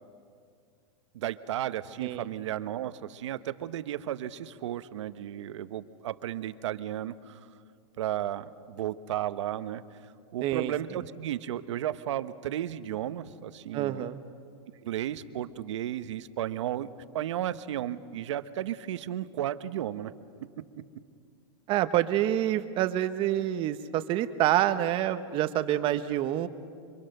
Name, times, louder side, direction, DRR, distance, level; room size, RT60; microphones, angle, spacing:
voice 1, 1.1-7.4 8.0-9.8 10.3-14.0 14.8-16.9 17.1-20.1, right 12 dB, 75° right, 13 dB, 1.0 m, -34 dB
voice 2, 10.4-10.7 13.7-14.2 21.7-26.5, right 12 dB, 35° right, 11 dB, 0.9 m, -27 dB
28.0 x 24.5 x 6.6 m, 2.3 s
supercardioid pair, 145°, 15 cm